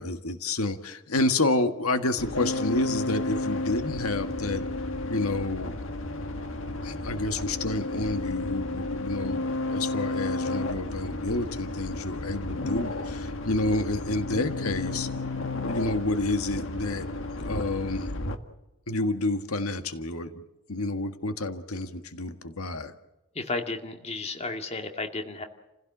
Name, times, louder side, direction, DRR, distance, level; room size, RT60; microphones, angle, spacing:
voice 1, 0.0-5.8 6.8-15.1 15.6-17.1 17.4-18.1 18.9-20.4 20.7-22.9, left 2 dB, 90° left, 8 dB, 1.7 m, -29 dB
sound 1, 2.2-18.4, left 2 dB, 65° left, 1.8 m, -32 dB
voice 2, 23.3-25.4, left 3 dB, 30° left, 4 dB, 2.2 m, -33 dB
30.0 x 16.5 x 7.4 m, 1.0 s
head